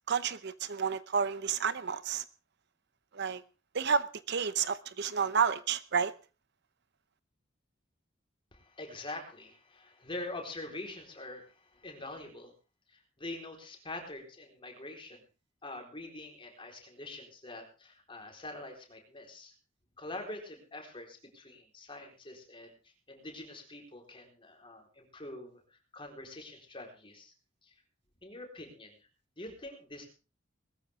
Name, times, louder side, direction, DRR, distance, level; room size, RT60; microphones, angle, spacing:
voice 1, 0.1-2.2 3.1-3.4 3.7-6.1, right 6 dB, 60° right, 0.8 m, -30 dB
voice 2, 8.5-12.5 12.9-15.2 15.6-19.5 20.0-22.7 23.1-27.3 27.6-27.7 28.2-28.9 29.4-30.1, left 2 dB, 25° left, 4.2 m, -45 dB
20.5 x 13.5 x 3.7 m
head